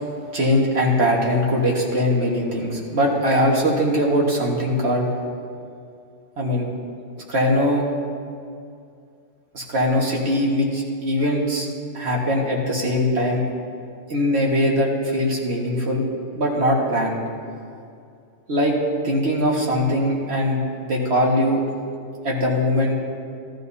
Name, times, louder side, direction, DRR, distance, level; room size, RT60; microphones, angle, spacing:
voice 1, 0.3-5.1 6.4-6.6 7.3-7.9 9.5-11.7 11.9-13.4 14.1-16.0 16.4-17.2 18.5-18.8 19.0-21.6 22.2-22.9, equal, 55° right, -2 dB, 1.9 m, -21 dB
14.0 x 13.5 x 2.8 m, 2.3 s
omnidirectional pair, 1.3 m